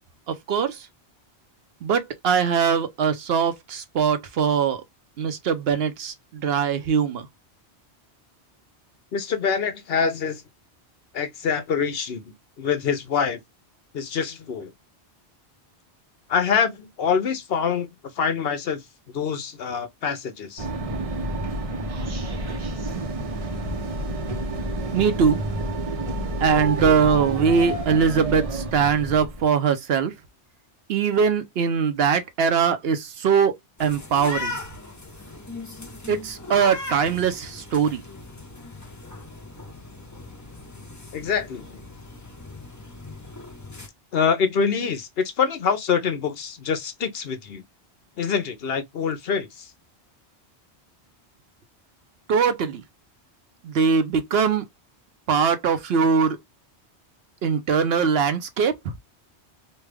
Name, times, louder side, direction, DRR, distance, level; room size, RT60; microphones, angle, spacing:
voice 1, 0.3-0.9 1.8-4.8 5.2-7.3 24.9-25.4 26.4-30.1 30.9-33.5 33.8-34.6 36.1-38.0 52.3-52.8 53.6-54.6 55.3-56.4 57.4-58.9, right 6 dB, 70° right, 0.8 m, -22 dB
voice 2, 9.1-10.4 11.1-13.4 13.9-14.7 16.3-18.8 19.1-20.7 41.1-41.8 44.1-47.6 48.2-49.7, left 6 dB, 65° left, 0.9 m, -25 dB
sound 1, 20.6-29.5, right 1 dB, 40° right, 0.7 m, -29 dB
sound 2, 33.8-43.9, left 3 dB, 20° left, 0.8 m, -38 dB
3.2 x 2.2 x 3.3 m
omnidirectional pair, 1.1 m